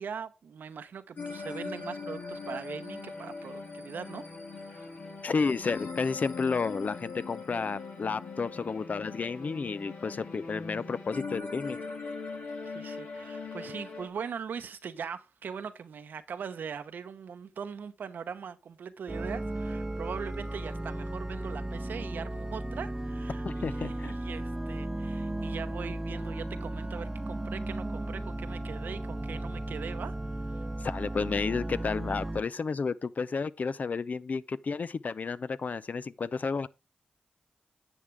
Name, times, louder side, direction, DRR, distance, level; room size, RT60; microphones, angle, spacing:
voice 1, 0.0-4.9 12.6-30.2 30.5-30.6, right 6 dB, 80° right, 0.9 m, -41 dB
sound 1, 1.2-14.1, left 4 dB, 75° left, 2.1 m, -40 dB
voice 2, 5.2-11.8 23.4-24.1 30.8-36.7, left 4 dB, 55° left, 0.5 m, -31 dB
sound 2, 19.1-32.4, right 1 dB, 20° right, 0.7 m, -35 dB
10.0 x 7.5 x 3.4 m
cardioid pair, 50°, 3 cm